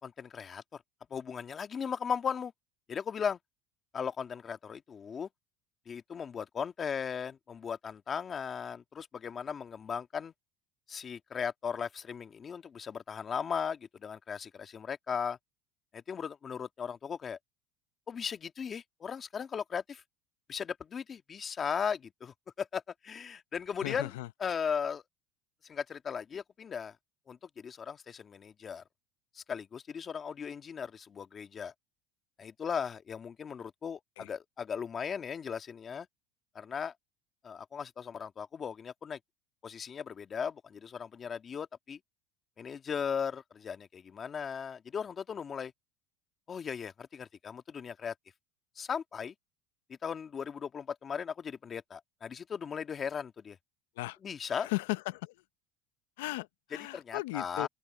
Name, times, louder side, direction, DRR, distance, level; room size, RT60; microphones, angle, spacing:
voice 1, 0.0-0.8 1.1-2.5 2.9-3.4 3.9-5.3 5.9-10.3 10.9-15.4 15.9-17.4 18.1-20.0 20.5-24.1 24.4-25.0 25.7-26.9 27.3-28.8 29.3-31.7 32.4-36.1 36.5-36.9 37.4-39.2 39.6-42.0 42.6-45.7 46.5-48.1 48.8-49.3 50.0-53.6 54.2-54.7 56.9-57.7, left 7 dB, 30° left, 1.7 m, -37 dB
voice 2, 23.8-24.3 34.2-34.3 54.0-54.2 54.5-55.4 56.2-57.7, left 21 dB, 85° left, 0.6 m, -36 dB
open air
supercardioid pair, 125°, 0 cm